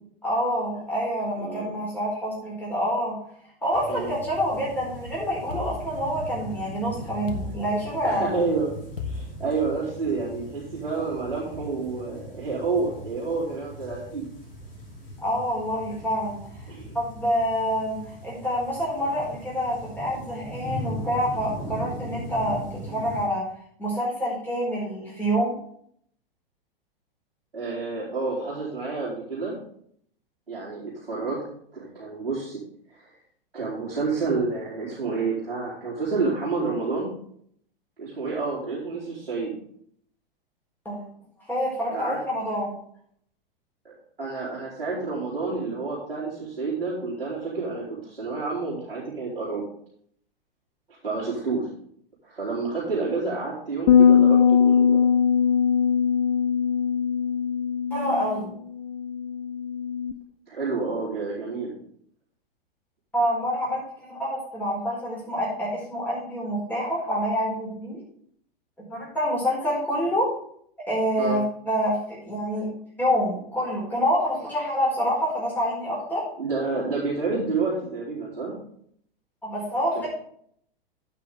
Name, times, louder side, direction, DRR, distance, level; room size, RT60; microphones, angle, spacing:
voice 1, 0.2-3.2 3.6-8.3 15.2-16.4 16.9-23.4 23.8-25.5 40.8-41.0 41.5-42.7 57.9-58.5 63.1-68.0 68.9-70.3 70.9-72.7 73.0-76.2 79.4-80.1, equal, 5° left, -6 dB, 4.7 m, -27 dB
sound 1, 3.7-23.3, right 1 dB, 25° left, 4.5 m, -39 dB
sound 2, 5.5-6.6 7.3-8.3 9.0-10.1, left 4 dB, 75° left, 1.6 m, -37 dB
voice 2, 8.0-8.7 9.1-14.3 16.7-16.9 27.5-29.5 30.5-31.4 31.7-32.6 33.0-33.1 33.5-37.1 38.0-39.5 41.9-42.2 43.8-49.6 50.9-51.7 52.2-55.0 60.5-61.8 71.2-71.4 76.4-78.6 80.0-80.1, right 4 dB, 80° right, -8 dB, 3.9 m, -29 dB
sound 3, 53.9-60.1, left 7 dB, 45° left, 0.6 m, -20 dB
15.0 x 6.2 x 3.7 m, 0.63 s
figure-of-eight pair, 105°, 29 cm